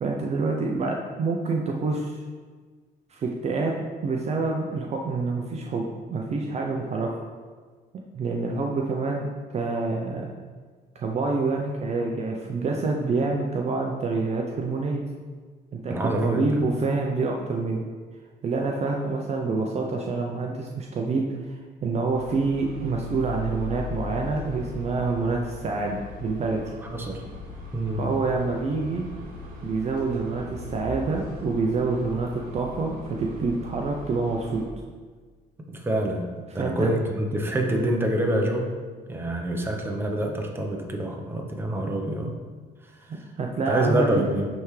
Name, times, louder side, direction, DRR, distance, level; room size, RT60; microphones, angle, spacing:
voice 1, 0.0-2.2 3.1-7.1 8.1-9.3 9.5-10.3 10.9-15.0 15.7-16.0 16.2-17.9 18.4-21.5 21.8-26.6 27.9-29.0 29.6-34.6 36.5-36.9 43.1-44.3, right 3 dB, 40° right, 0 dB, 0.6 m, -27 dB
voice 2, 15.9-16.6 26.9-27.2 27.7-28.0 35.7-36.3 36.5-38.7 39.1-42.3 43.7-44.5, right 1 dB, 15° right, 1 dB, 0.9 m, -26 dB
sound 1, 22.1-34.6, left 2 dB, 55° right, 1.6 m, -39 dB
10.5 x 3.5 x 3.2 m, 1.5 s
cardioid pair, 110°, 17 cm